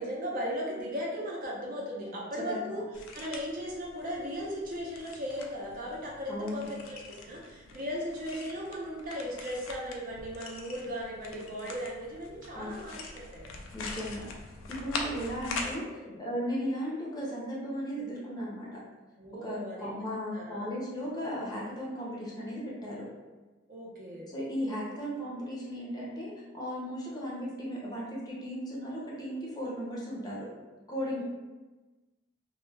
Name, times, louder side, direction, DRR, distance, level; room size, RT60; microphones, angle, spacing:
voice 1, 0.0-2.8 3.1-13.5 15.9-16.2 19.2-20.0 20.3-20.7 23.7-24.3 31.1-31.2, equal, 45° right, -3 dB, 0.6 m, -37 dB
sound 1, 2.9-15.8, left 3 dB, 90° left, 0.4 m, -43 dB
voice 2, 6.3-6.7 12.5-13.0 13.7-14.2 14.7-15.9 16.2-18.8 19.4-23.1 24.3-30.5 30.9-31.2, equal, 20° left, -5 dB, 0.5 m, -36 dB
2.2 x 2.1 x 3.2 m, 1.2 s
head